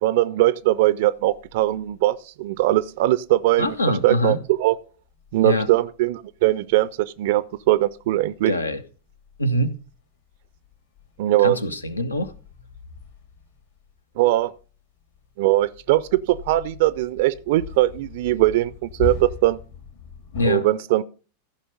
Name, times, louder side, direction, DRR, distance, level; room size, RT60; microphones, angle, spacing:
voice 1, 0.0-3.7 4.0-4.8 5.3-8.5 11.2-11.6 14.2-14.5 15.4-19.6 20.4-21.0, right 16 dB, 50° right, 0.4 m, -20 dB
sound 1, 0.6-2.2 2.4-20.5, left 6 dB, 60° left, 2.9 m, -41 dB
voice 2, 3.6-4.4 5.4-5.7 8.5-8.8 9.4-9.7 11.4-12.3 20.3-20.7, left 1 dB, 80° left, 0.9 m, -23 dB
14.5 x 5.5 x 5.3 m
figure-of-eight pair, 90°, 0 cm